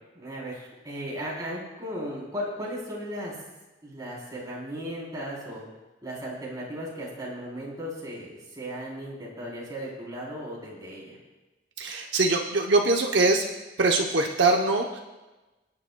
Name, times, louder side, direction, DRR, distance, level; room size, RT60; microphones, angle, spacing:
voice 1, 0.1-3.4 3.8-5.6 6.0-11.2, equal, 20° right, -5 dB, 3.6 m, -36 dB
voice 2, 11.8-13.5 13.8-15.0, right 3 dB, 70° right, 1 dB, 0.9 m, -23 dB
25.5 x 9.8 x 2.3 m, 1.1 s
head